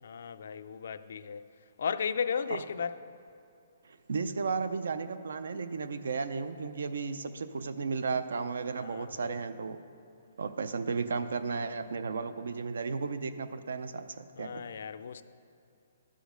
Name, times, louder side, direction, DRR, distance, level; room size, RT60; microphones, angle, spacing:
voice 1, 0.0-1.5 1.8-3.0 8.8-9.4 14.4-15.2, left 6 dB, 65° left, 0.3 m, -35 dB
voice 2, 4.1-9.8 10.4-14.7, right 4 dB, 80° right, 0.5 m, -34 dB
12.0 x 5.1 x 5.1 m
hypercardioid pair, 170°, 0 cm